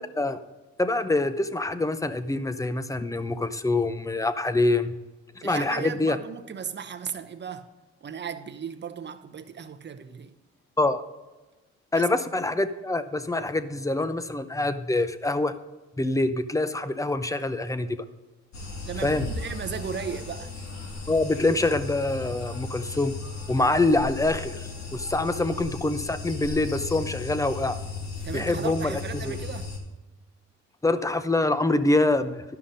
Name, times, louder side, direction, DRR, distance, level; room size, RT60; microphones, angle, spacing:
voice 1, 0.8-4.9 5.4-6.2 10.8-11.0 11.9-15.5 16.0-17.9 19.0-19.3 21.1-23.2 23.5-27.8 28.3-29.3 30.8-32.4, left 2 dB, 10° left, 0.6 m, -25 dB
voice 2, 5.4-7.7 8.0-10.3 11.9-12.1 18.8-20.5 28.2-29.7, right 7 dB, 35° right, 0.8 m, -36 dB
sound 1, 18.5-29.8, left 4 dB, 65° left, 2.5 m, -36 dB
11.5 x 5.7 x 5.1 m
cardioid pair, 90°, 30 cm